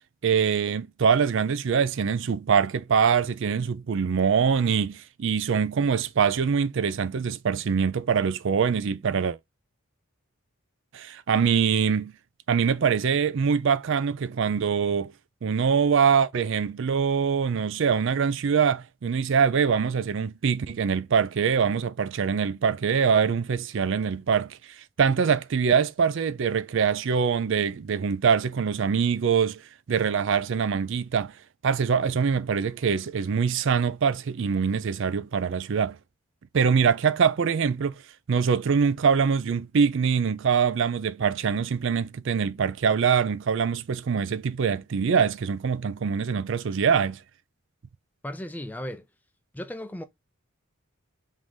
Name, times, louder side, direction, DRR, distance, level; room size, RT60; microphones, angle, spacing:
voice 1, 0.2-9.4 10.9-12.1 12.5-15.1 15.4-29.6 29.9-31.3 31.6-36.0 36.5-38.0 38.3-47.2, right 6 dB, 60° right, 0.4 m, -24 dB
voice 2, 48.2-49.1 49.5-50.0, left 1 dB, 10° left, 0.3 m, -35 dB
3.7 x 2.7 x 4.6 m
head